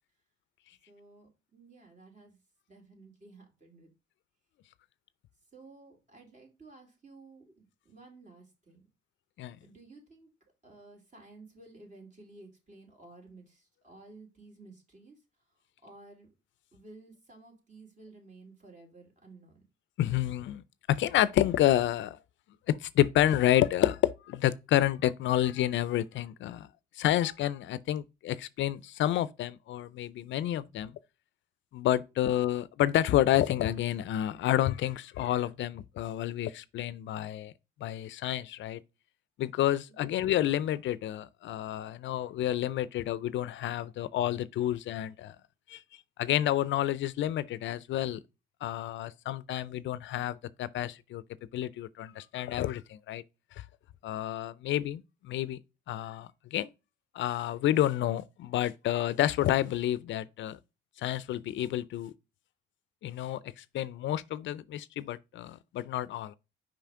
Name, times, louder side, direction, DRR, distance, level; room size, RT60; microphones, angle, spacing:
voice 1, 0.9-2.4 2.7-3.9 5.5-8.9 9.6-10.3 10.6-15.5 15.8-16.3 16.7-19.6 32.1-32.3 39.9-40.1 54.6-54.8, right 3 dB, 40° right, 3.1 m, -54 dB
voice 2, 20.0-20.6 20.9-22.2 22.7-26.7 27.0-30.9 31.7-37.5 37.8-38.8 39.4-45.4 45.7-45.8 46.2-48.2 48.6-51.2 51.5-53.2 54.0-55.0 55.3-55.6 55.9-56.7 57.1-60.6 61.0-62.1 63.0-66.3, left 12 dB, 70° left, 0.4 m, -29 dB
5.6 x 5.1 x 3.6 m
cardioid pair, 90°, 20 cm